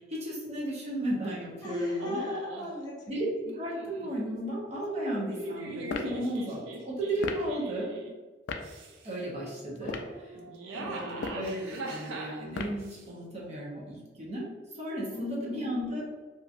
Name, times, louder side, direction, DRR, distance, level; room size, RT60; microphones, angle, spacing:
voice 1, 0.1-2.2 3.1-3.3 3.6-7.9 9.0-10.0 10.7-14.4 14.7-16.0, right 1 dB, 35° right, -5 dB, 0.7 m, -34 dB
voice 2, 1.6-3.1 9.8-10.6 10.9-11.4 15.1-15.7, left 1 dB, 20° left, -6 dB, 0.9 m, -38 dB
sound 1, 2.0-2.7 3.5-4.1 5.0-8.1 8.6-9.2 10.4-13.0, right 2 dB, 75° right, 0.4 m, -41 dB
sound 2, 5.9-6.2 7.2-7.5 8.5-8.7 9.8-10.2 11.1-11.5 12.5-12.9, left 4 dB, 65° left, 0.3 m, -35 dB
2.9 x 2.5 x 2.4 m, 1.3 s
head